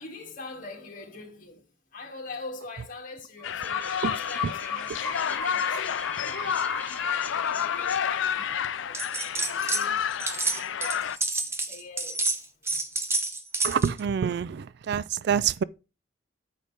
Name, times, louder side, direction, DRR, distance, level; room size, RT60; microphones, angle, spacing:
voice 1, 0.0-12.8, left 3 dB, 45° left, 2.6 m, -44 dB
sound 1, 3.4-11.2, left 8 dB, 80° left, 0.5 m, -30 dB
sound 2, 3.4-8.8, left 4 dB, 10° left, 1.2 m, -36 dB
sound 3, 8.9-9.9 10.1-14.0, right 2 dB, 15° right, 0.9 m, -29 dB
voice 2, 13.6-15.6, right 7 dB, 60° right, 0.4 m, -26 dB
9.6 x 6.6 x 3.5 m
head